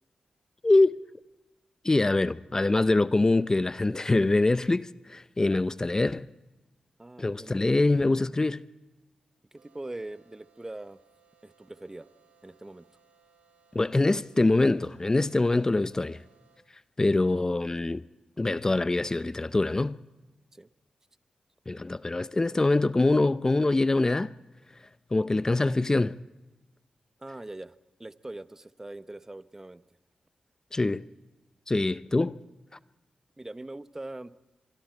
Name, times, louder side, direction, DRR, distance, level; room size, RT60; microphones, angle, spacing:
voice 1, 0.6-1.0 1.8-6.3 7.2-8.6 13.7-16.2 17.0-18.0 18.4-20.0 21.7-24.3 25.1-26.2 30.7-31.0 31.7-32.4, left 2 dB, 30° left, 0.6 m, -24 dB
voice 2, 7.0-7.7 9.5-11.0 11.4-12.1 12.4-12.9 20.5-20.7 27.2-29.8 33.4-34.4, right 2 dB, 20° right, 0.9 m, -42 dB
sound 1, 9.6-16.6, right 6 dB, 75° right, 3.3 m, -65 dB
25.0 x 24.0 x 4.5 m
cardioid pair, 50°, 2 cm